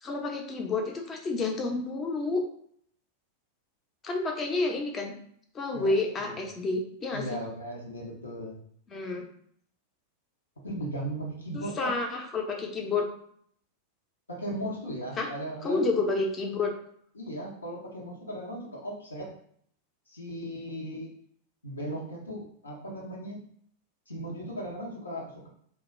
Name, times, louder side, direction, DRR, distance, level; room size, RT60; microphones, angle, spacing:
voice 1, 0.0-2.4 4.0-5.1 5.5-7.2 8.9-9.2 11.5-13.1 15.2-15.3 15.6-16.7, left 3 dB, 25° left, 2 dB, 0.5 m, -29 dB
voice 2, 5.7-6.4 7.1-8.6 10.6-11.9 14.3-15.8 17.1-19.3 20.1-21.2 21.6-23.4 24.1-25.5, right 1 dB, 80° left, -3 dB, 0.7 m, -37 dB
2.2 x 2.1 x 3.1 m, 0.64 s
figure-of-eight pair, 90°, 0 cm